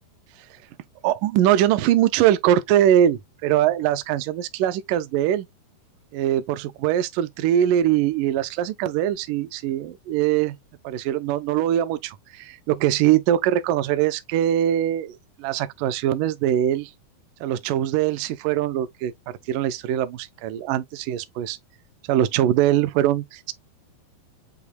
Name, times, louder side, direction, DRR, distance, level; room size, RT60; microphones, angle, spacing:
voice 1, 1.0-5.5 6.1-10.6 10.8-16.9 17.4-19.1 19.5-21.6 22.1-23.5, right 11 dB, 85° right, 1.8 m, -22 dB
8.2 x 2.9 x 2.2 m
omnidirectional pair, 4.4 m